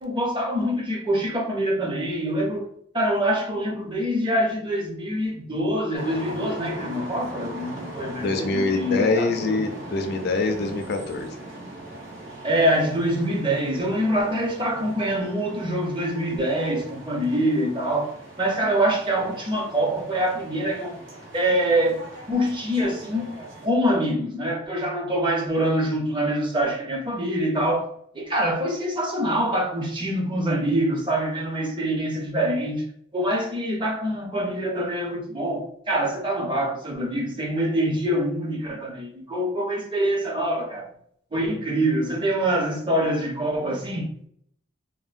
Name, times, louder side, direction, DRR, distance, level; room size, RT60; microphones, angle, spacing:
voice 1, 0.0-2.7 2.9-9.6 12.4-20.9 21.3-22.0 22.3-23.3 23.6-32.8 33.1-40.9 41.3-44.1, right 1 dB, 25° right, 0.6 m, -25 dB
sound 1, 5.9-23.7, right 2 dB, 70° right, 0.7 m, -40 dB
voice 2, 8.2-11.3, left 3 dB, 55° left, 0.4 m, -24 dB
3.5 x 2.2 x 2.5 m
head